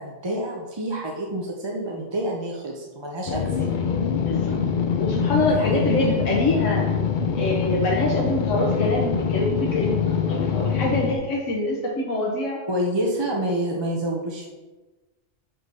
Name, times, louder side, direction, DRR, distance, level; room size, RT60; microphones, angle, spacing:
voice 1, 0.0-3.7 5.5-5.8 12.7-14.5, right 1 dB, 25° right, -1 dB, 0.6 m, -28 dB
sound 1, 3.3-11.2, left 7 dB, 50° left, 0.6 m, -24 dB
voice 2, 4.2-4.6 5.0-6.9 7.3-12.6, left 1 dB, 85° left, -2 dB, 1.4 m, -25 dB
6.0 x 5.6 x 5.3 m, 1.2 s
omnidirectional pair, 1.3 m